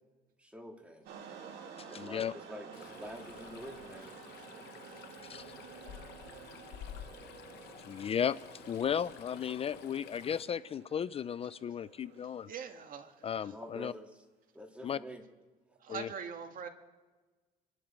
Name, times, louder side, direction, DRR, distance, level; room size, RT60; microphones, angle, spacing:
voice 1, 0.4-1.1 1.9-4.2 13.4-14.2 14.5-15.2, equal, 5° right, 3 dB, 2.1 m, -47 dB
sound 1, 1.1-12.6, right 7 dB, 80° right, 2.5 m, -51 dB
voice 2, 1.9-2.3 5.2-5.5 7.9-8.4 8.7-12.5 13.2-13.9 14.8-15.0 15.9-16.1, left 8 dB, 35° left, 17 dB, 0.4 m, -35 dB
Stream, 2.7-10.4, left 11 dB, 80° left, 0.8 m, -51 dB
voice 3, 11.7-13.5 15.8-16.7, right 6 dB, 55° right, 6 dB, 1.9 m, -44 dB
26.5 x 11.5 x 4.4 m, 1.3 s
cardioid pair, 110°, 17 cm